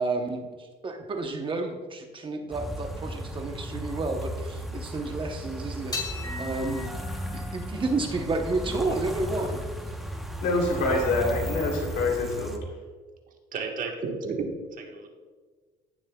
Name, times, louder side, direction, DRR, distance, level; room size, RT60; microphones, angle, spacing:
voice 1, 0.0-6.9 7.3-9.6, right 3 dB, 30° right, 4 dB, 0.9 m, -31 dB
sound 1, 2.5-12.6, equal, ahead, 0.9 m, -35 dB
sound 2, 5.9-12.5, left 2 dB, 20° left, 2.3 m, -41 dB
voice 2, 10.4-12.6, left 2 dB, 75° left, -1 dB, 3.1 m, -26 dB
voice 3, 13.5-14.5 14.8-15.1, right 4 dB, 50° right, 2 dB, 1.4 m, -32 dB
16.0 x 7.3 x 2.3 m, 1.5 s
cardioid pair, 125°, 18 cm